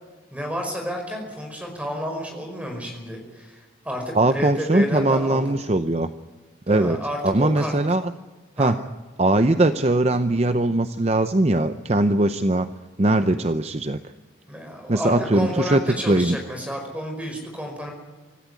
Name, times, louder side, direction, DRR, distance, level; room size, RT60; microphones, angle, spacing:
voice 1, 0.3-5.6 6.7-7.7 8.6-8.7 14.5-17.9, equal, 5° right, 2 dB, 5.2 m, -31 dB
voice 2, 4.1-6.1 6.7-7.0 7.2-8.1 8.6-8.8 9.2-12.7 13.0-14.0 14.9-15.8 16.1-16.4, right 2 dB, 35° right, 10 dB, 0.6 m, -20 dB
25.5 x 14.5 x 9.5 m, 1.3 s
head